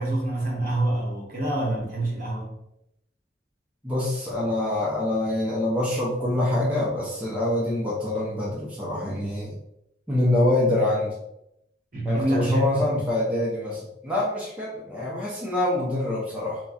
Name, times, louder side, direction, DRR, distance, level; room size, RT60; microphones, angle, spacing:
voice 1, 0.0-2.5 11.9-12.9, right 1 dB, 50° right, -3 dB, 0.9 m, -26 dB
voice 2, 3.8-9.5 10.1-11.1 12.1-16.6, left 1 dB, 5° right, -6 dB, 0.5 m, -25 dB
4.0 x 2.2 x 2.4 m, 0.81 s
head